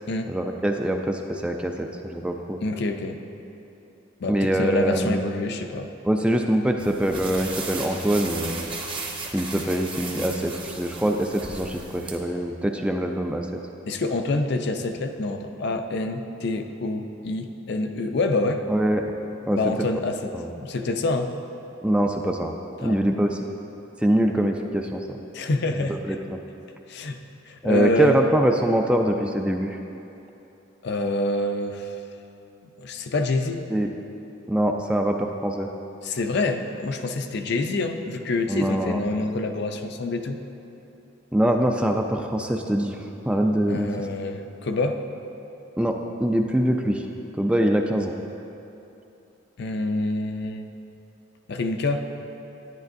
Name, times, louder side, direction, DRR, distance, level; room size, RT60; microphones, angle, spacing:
voice 1, 0.3-2.6 4.3-5.2 6.0-8.7 9.3-13.5 18.7-19.0 19.5-19.6 20.3-20.5 21.8-22.5 22.8-23.4 24.0-25.2 25.8-26.4 27.6-29.8 33.7-33.9 34.5-35.7 38.5-39.0 41.3-43.0 43.3-43.9 45.8-47.1 47.4-48.1, right 1 dB, 5° right, 3 dB, 0.3 m, -24 dB
voice 2, 2.6-3.2 4.2-5.9 13.9-18.6 19.5-21.4 22.8-23.0 25.3-26.0 26.9-27.2 27.5-28.2 30.8-31.9 32.8-33.6 36.0-40.4 43.7-45.0 49.6-50.7 51.5-52.1, left 2 dB, 55° left, 6 dB, 0.5 m, -26 dB
sound 1, 6.8-12.2, right 3 dB, 25° right, 0.8 m, -35 dB
10.5 x 10.0 x 2.6 m, 2.9 s
head